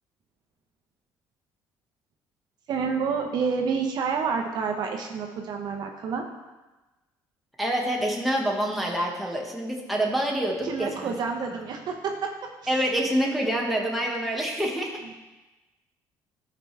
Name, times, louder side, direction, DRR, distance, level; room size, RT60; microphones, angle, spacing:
voice 1, 2.7-6.2 10.6-12.9, right 5 dB, 60° right, 3 dB, 1.0 m, -29 dB
voice 2, 7.6-11.1 12.7-15.0, right 1 dB, ahead, -2 dB, 1.6 m, -26 dB
12.0 x 5.0 x 3.4 m, 1.1 s
cardioid pair, 95°, 8 cm